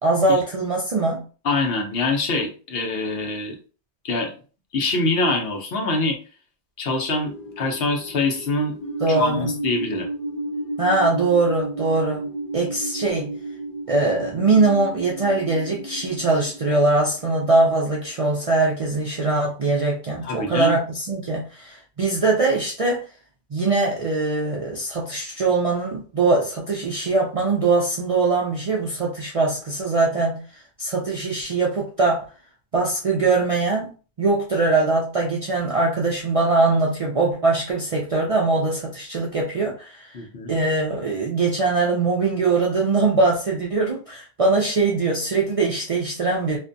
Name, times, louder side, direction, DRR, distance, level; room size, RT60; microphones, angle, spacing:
voice 1, 0.0-1.2 9.0-9.5 10.8-12.2 12.5-13.3 13.9-23.0 23.5-30.4 30.8-32.2 32.7-33.9 34.2-40.2 40.5-46.6, right 3 dB, 50° right, -2 dB, 0.4 m, -22 dB
voice 2, 1.4-3.6 4.0-4.3 4.7-6.2 6.8-8.8 9.1-10.1 20.2-20.8 40.1-40.5, left 2 dB, 65° left, 2 dB, 0.9 m, -24 dB
sound 1, 7.2-18.1, right 1 dB, 50° left, 0.6 m, -33 dB
2.5 x 2.2 x 2.5 m, 0.37 s
omnidirectional pair, 1.1 m